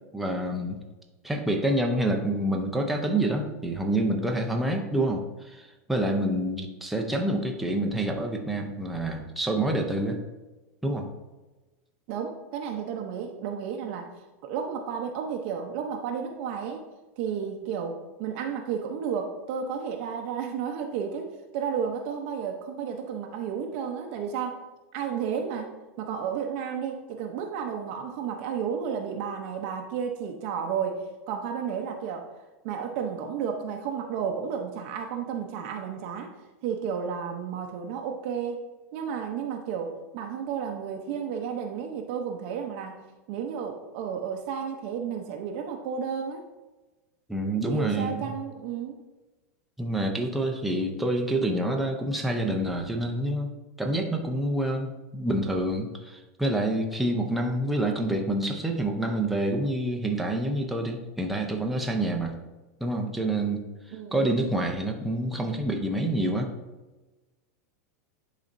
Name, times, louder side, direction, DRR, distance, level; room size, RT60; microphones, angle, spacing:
voice 1, 0.1-0.8 1.2-10.2 10.8-11.1 47.3-48.3 49.8-53.5 53.8-62.4 62.8-63.6 64.1-66.5, right 1 dB, ahead, 1 dB, 0.6 m, -27 dB
voice 2, 12.1-14.1 14.4-16.8 17.2-24.6 24.9-25.7 26.0-32.2 32.6-36.3 36.6-38.6 38.9-43.0 43.3-46.5 47.7-49.0 63.9-64.2, right 7 dB, 50° right, 3 dB, 0.7 m, -32 dB
10.5 x 4.1 x 2.6 m, 1.1 s
supercardioid pair, 150°, 8 cm